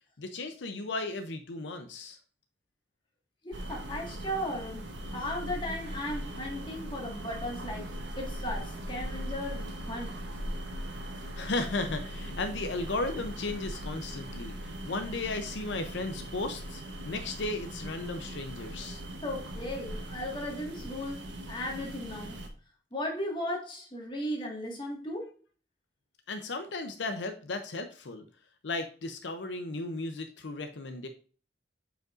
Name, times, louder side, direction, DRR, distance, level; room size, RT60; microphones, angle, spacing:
voice 1, 0.2-2.2 11.3-19.0 26.3-28.2 28.6-31.1, left 2 dB, 85° left, 0.6 m, -35 dB
voice 2, 3.4-10.2 19.2-22.5 22.9-25.3, left 1 dB, 25° left, 1.8 m, -36 dB
sound 1, 3.5-22.5, right 1 dB, 90° right, 1.1 m, -40 dB
7.7 x 5.0 x 2.5 m
head